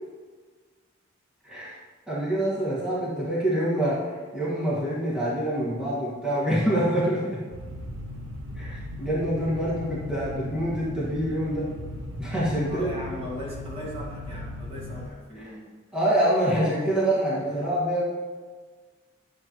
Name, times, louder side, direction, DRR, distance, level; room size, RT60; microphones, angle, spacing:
voice 1, 1.4-1.7 2.1-7.4 8.5-11.7 12.2-13.0 15.4-15.5 15.9-18.0, right 1 dB, 5° right, -9 dB, 1.7 m, -26 dB
sound 1, 7.5-15.1, left 1 dB, 70° right, 0.8 m, -37 dB
voice 2, 12.7-15.7, equal, 30° right, -5 dB, 2.0 m, -38 dB
11.0 x 7.5 x 3.1 m, 1.5 s
head